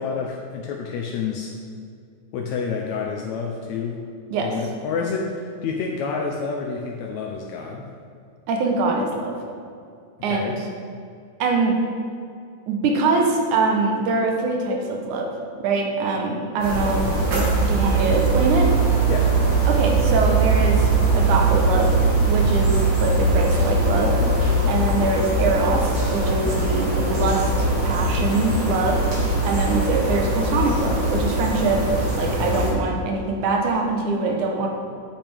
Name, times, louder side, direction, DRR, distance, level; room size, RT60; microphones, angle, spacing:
voice 1, 0.0-1.5 2.3-4.0 4.4-7.9 10.2-10.6 19.1-19.4, left 5 dB, 75° left, 1 dB, 1.8 m, -28 dB
voice 2, 8.5-9.4 10.2-10.5 11.4-11.8 12.7-15.3 15.6-17.1 17.3-18.7 19.7-20.9 21.1-21.9 22.3-31.9 32.1-34.7, right 3 dB, 90° right, 1 dB, 2.5 m, -23 dB
sound 1, 16.6-32.7, right 2 dB, 40° right, 2.7 m, -21 dB
sound 2, 16.6-18.6, right 1 dB, 70° right, 3.2 m, -34 dB
8.9 x 8.4 x 3.5 m, 2.4 s
omnidirectional pair, 3.4 m